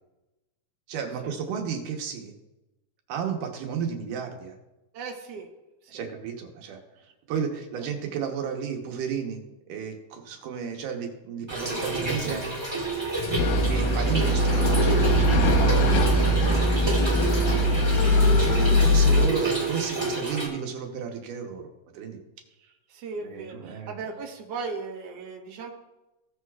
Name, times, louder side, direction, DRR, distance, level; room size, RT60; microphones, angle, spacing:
voice 1, 0.9-2.3 3.1-4.6 5.9-9.4 9.7-12.6 13.7-16.8 18.0-22.2 23.2-24.0, right 7 dB, 85° right, 3 dB, 2.6 m, -33 dB
voice 2, 4.9-5.5 5.8-6.1 13.2-13.7 17.4-18.0 22.9-25.7, right 4 dB, 60° right, 0 dB, 2.2 m, -38 dB
Trickle dribble / Fill (with liquid), 11.5-20.5, right 2 dB, 10° right, 1.3 m, -30 dB
sound 1, 13.4-19.3, equal, 90° left, 2.6 m, -21 dB
16.5 x 8.1 x 2.4 m, 0.99 s
omnidirectional pair, 3.6 m